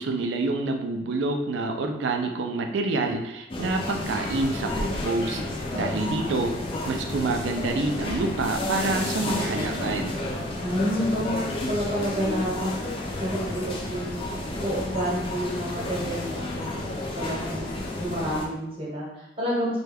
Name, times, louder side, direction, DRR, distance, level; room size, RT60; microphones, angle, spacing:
voice 1, 0.0-10.2, right 2 dB, 70° right, 4 dB, 0.4 m, -27 dB
sound 1, 3.5-18.4, left 2 dB, 25° left, 0.4 m, -31 dB
voice 2, 5.7-6.1 10.6-12.7 13.0-17.6 17.9-19.8, equal, 30° right, -5 dB, 0.9 m, -30 dB
3.2 x 2.2 x 3.3 m, 0.89 s
head